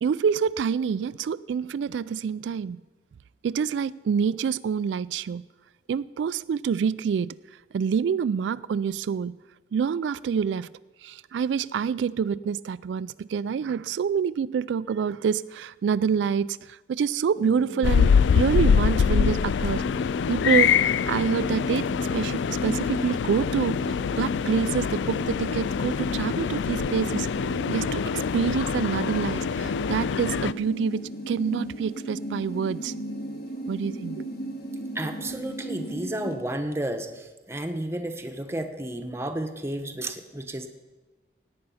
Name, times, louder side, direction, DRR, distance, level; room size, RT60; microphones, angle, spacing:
voice 1, 0.0-2.8 3.4-5.4 5.9-7.4 7.7-9.4 9.7-10.7 11.0-19.8 20.3-21.9 22.1-23.8 24.2-27.3 27.7-32.9 33.7-34.2, right 7 dB, 90° right, 0.3 m, -27 dB
sound 1, 17.4-36.4, equal, 60° left, 1.8 m, -35 dB
sound 2, 17.8-30.5, left 7 dB, 90° left, 0.3 m, -25 dB
voice 2, 34.9-40.7, right 1 dB, 15° right, 0.9 m, -32 dB
17.5 x 8.8 x 5.6 m
head